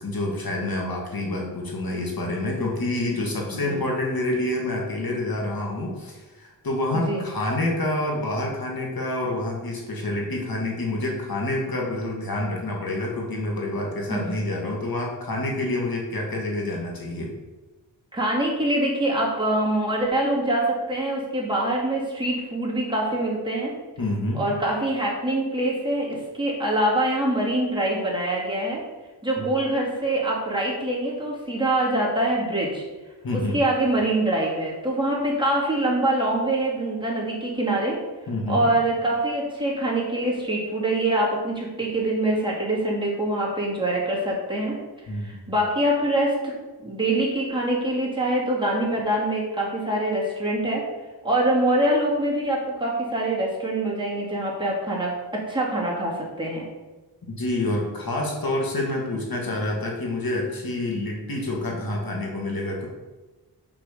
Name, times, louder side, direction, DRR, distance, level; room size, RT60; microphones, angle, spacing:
voice 1, 0.0-17.3 24.0-24.4 33.2-33.6 38.3-38.7 45.1-45.3 57.3-62.9, left 1 dB, 60° left, -1 dB, 2.1 m, -27 dB
voice 2, 18.1-23.7 24.3-28.8 29.2-32.8 33.3-38.0 38.5-44.8 45.2-46.5 46.8-50.8 51.2-56.6, right 1 dB, 10° right, -5 dB, 2.7 m, -24 dB
6.3 x 5.6 x 6.8 m, 1.2 s
wide cardioid pair, 90°, 41 cm